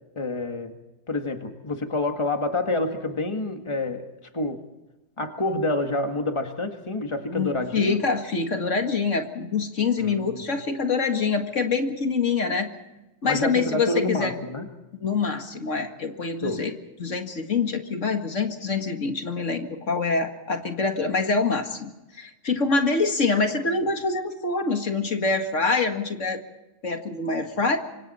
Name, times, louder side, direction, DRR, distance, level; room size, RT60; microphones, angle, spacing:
voice 1, 0.2-0.8 1.1-4.1 4.3-4.6 5.2-8.0 10.0-10.5 13.2-14.7 16.4-16.6, left 2 dB, 20° left, 5 dB, 1.9 m, -28 dB
voice 2, 7.3-12.7 13.2-14.3 14.9-16.7 17.0-21.9 22.2-26.4 26.8-27.8, left 4 dB, 65° left, 5 dB, 2.3 m, -25 dB
27.0 x 26.0 x 4.3 m, 1.0 s
omnidirectional pair, 1.4 m